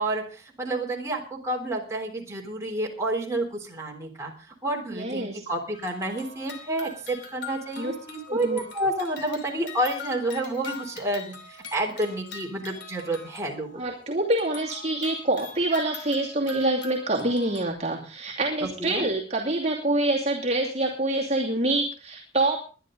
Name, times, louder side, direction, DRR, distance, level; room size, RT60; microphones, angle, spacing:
voice 1, 0.0-4.3 4.6-13.8 18.6-19.1, right 1 dB, 15° right, -1 dB, 3.5 m, -29 dB
voice 2, 4.9-5.4 7.8-7.9 8.3-8.6 13.7-22.6, right 2 dB, 35° right, -3 dB, 2.5 m, -26 dB
sound 1, 5.7-13.9 14.3-17.7, left 5 dB, 70° left, 3.0 m, -43 dB
21.5 x 10.5 x 3.9 m, 0.37 s
head